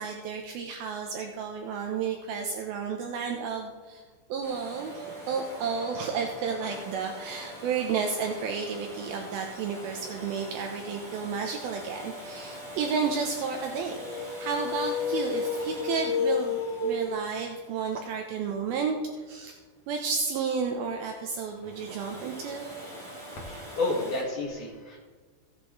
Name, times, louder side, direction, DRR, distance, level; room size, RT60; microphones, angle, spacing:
voice 1, 0.0-4.0 4.3-14.0 14.4-19.5 19.9-22.7, right 5 dB, 80° right, 3 dB, 2.2 m, -32 dB
Domestic sounds home sounds, 4.4-19.2 21.5-24.2, equal, 25° right, 1.0 m, -43 dB
sound 1, 14.0-17.6, left 5 dB, 75° left, 2.5 m, -30 dB
voice 2, 23.4-25.0, left 2 dB, 60° left, -3 dB, 2.4 m, -31 dB
17.0 x 8.2 x 3.2 m, 1.4 s
omnidirectional pair, 5.2 m